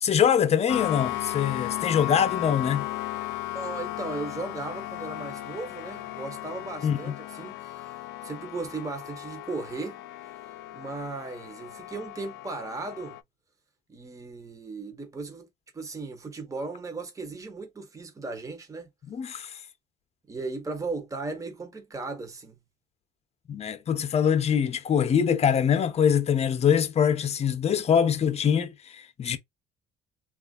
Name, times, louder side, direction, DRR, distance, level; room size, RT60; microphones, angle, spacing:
voice 1, 0.0-2.9 6.8-7.1 19.1-19.6 23.5-29.4, left 8 dB, 40° left, 0.7 m, -24 dB
sound 1, 0.7-13.2, left 15 dB, 80° left, 0.4 m, -35 dB
voice 2, 3.5-8.0 8.2-10.0 10.7-13.2 13.9-15.5 15.7-18.9 20.3-22.6, right 3 dB, 20° right, 0.8 m, -36 dB
3.2 x 2.4 x 2.4 m
cardioid pair, 110°, 17 cm